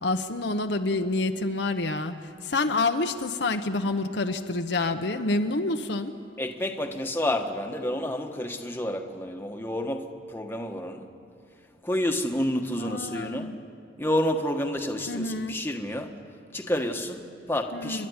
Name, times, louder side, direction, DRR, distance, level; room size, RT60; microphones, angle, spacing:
voice 1, 0.0-2.1 2.4-6.1 12.7-13.6 15.1-15.6 17.7-18.1, left 2 dB, 65° left, 6 dB, 1.0 m, -28 dB
voice 2, 6.4-11.1 11.8-13.5 14.0-16.1 16.5-18.1, left 1 dB, 10° left, 3 dB, 1.4 m, -29 dB
29.5 x 12.0 x 9.7 m, 2.6 s
head